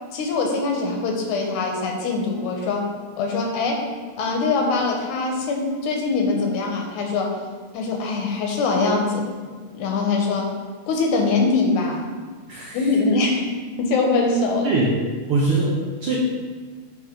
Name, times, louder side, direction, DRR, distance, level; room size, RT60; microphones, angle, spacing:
voice 1, 0.1-2.9 3.2-3.8 4.2-7.3 7.7-9.3 9.7-10.5 10.9-12.0 12.7-13.5 13.8-14.7, left 3 dB, 85° left, 1 dB, 2.3 m, -22 dB
voice 2, 12.5-13.0 14.6-14.9 15.3-16.2, right 2 dB, 80° right, -4 dB, 1.2 m, -22 dB
9.3 x 3.4 x 3.7 m, 1.5 s
omnidirectional pair, 3.4 m